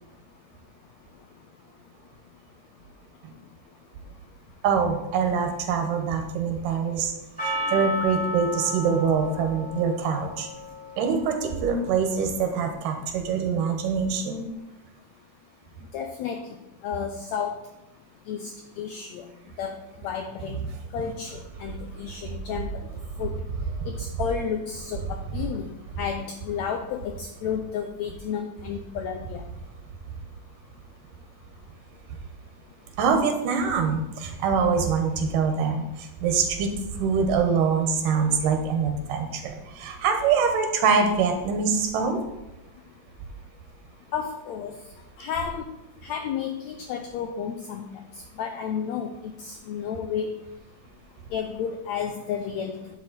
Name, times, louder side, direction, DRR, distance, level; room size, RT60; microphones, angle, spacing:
voice 1, 4.6-7.1 7.4-10.5 11.0-14.5 23.8-23.9 33.0-42.2, right 5 dB, 75° right, 5 dB, 2.8 m, -24 dB
Percussion, 7.4-11.9, left 1 dB, ahead, 2.4 m, -33 dB
voice 2, 15.9-16.5 16.8-17.6 18.3-18.5 18.8-19.3 19.6-19.7 20.0-20.6 20.9-22.7 23.2-23.3 23.9-29.4 44.1-44.7 45.2-45.6 46.0-48.0 48.4-50.4 51.3-52.9, left 7 dB, 90° left, 6 dB, 1.5 m, -32 dB
10.5 x 6.3 x 4.2 m, 0.90 s
omnidirectional pair, 3.9 m